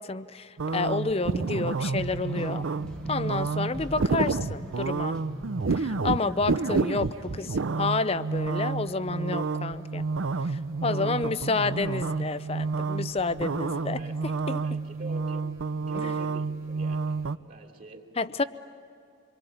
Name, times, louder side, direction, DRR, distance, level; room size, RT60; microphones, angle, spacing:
voice 1, 0.0-2.6 3.1-5.2 5.7-10.0 10.4-14.0 14.5-14.6 15.9-16.2 18.2-18.4, left 3 dB, 30° left, 13 dB, 0.6 m, -30 dB
sound 1, 0.6-17.4, right 4 dB, 85° right, 0.6 m, -30 dB
sound 2, 1.9-7.5, equal, 5° left, 1.1 m, -41 dB
voice 2, 14.6-15.5 15.8-18.1, right 2 dB, 45° right, 1 dB, 3.2 m, -46 dB
27.0 x 23.5 x 9.2 m, 2.5 s
head